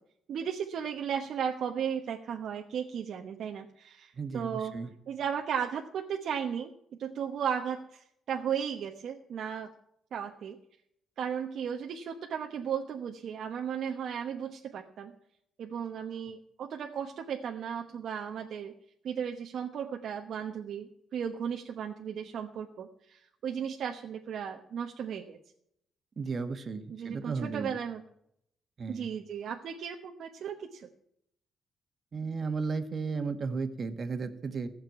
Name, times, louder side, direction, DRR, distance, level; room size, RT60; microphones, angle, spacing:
voice 1, 0.3-4.7 5.1-6.7 7.0-9.7 10.1-10.6 11.2-15.1 15.6-18.7 19.0-25.4 26.9-28.0 28.9-30.9, right 8 dB, 65° right, 3 dB, 1.1 m, -35 dB
voice 2, 4.2-4.9 26.2-27.7 28.8-29.1 32.1-34.7, right 4 dB, 45° right, 8 dB, 1.7 m, -34 dB
15.5 x 6.7 x 9.2 m, 0.73 s
cardioid pair, 90°, 0 cm